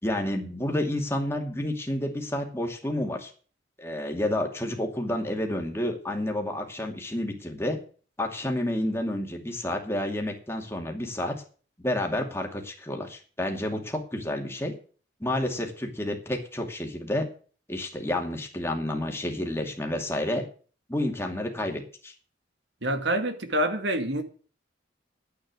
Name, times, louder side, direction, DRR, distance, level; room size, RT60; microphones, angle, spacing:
voice 1, 0.0-3.3 3.8-7.8 8.2-11.4 11.8-14.7 15.2-17.3 17.7-20.4 20.9-22.1, left 1 dB, 15° left, 2.4 m, -30 dB
voice 2, 22.8-24.2, right 1 dB, 75° right, 2.1 m, -26 dB
10.5 x 8.5 x 8.2 m
head